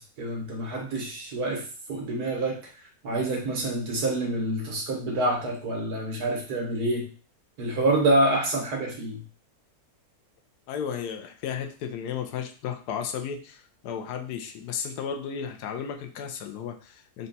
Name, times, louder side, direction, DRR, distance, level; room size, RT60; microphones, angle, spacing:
voice 1, 0.0-2.6 3.0-7.1 7.6-9.2, right 1 dB, 75° right, 0 dB, 1.6 m, -27 dB
voice 2, 10.7-17.3, left 7 dB, 90° left, 5 dB, 1.2 m, -34 dB
4.1 x 2.2 x 4.0 m, 0.38 s
omnidirectional pair, 1.7 m